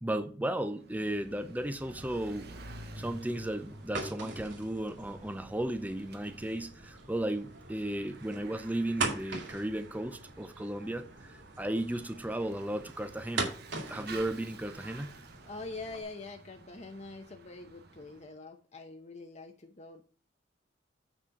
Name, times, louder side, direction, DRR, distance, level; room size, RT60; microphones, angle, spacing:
voice 1, 0.0-13.5 13.9-15.2, right 1 dB, 10° right, 0.6 m, -35 dB
Bicycle / Mechanisms, 0.7-18.3, right 2 dB, 60° right, 1.1 m, -51 dB
sound 1, 1.8-16.0, right 3 dB, 80° right, 2.2 m, -42 dB
voice 2, 15.4-20.1, left 3 dB, 40° left, 0.9 m, -44 dB
9.0 x 4.3 x 6.3 m
head